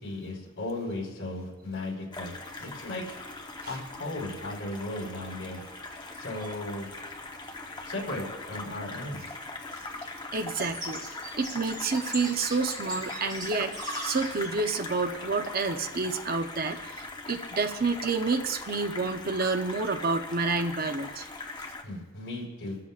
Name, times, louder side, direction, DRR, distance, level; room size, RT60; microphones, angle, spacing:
voice 1, 0.0-3.2 3.7-5.6 6.2-6.9 7.8-9.2 21.8-22.8, left 1 dB, 60° left, -2 dB, 4.5 m, -36 dB
sound 1, 2.1-21.8, left 3 dB, 20° left, 0.9 m, -41 dB
sound 2, 2.9-15.9, equal, 20° right, 4.3 m, -44 dB
voice 2, 10.3-11.0 11.4-13.8 14.0-21.2, right 4 dB, 45° right, 7 dB, 0.7 m, -29 dB
25.0 x 13.5 x 2.4 m, 1.2 s
head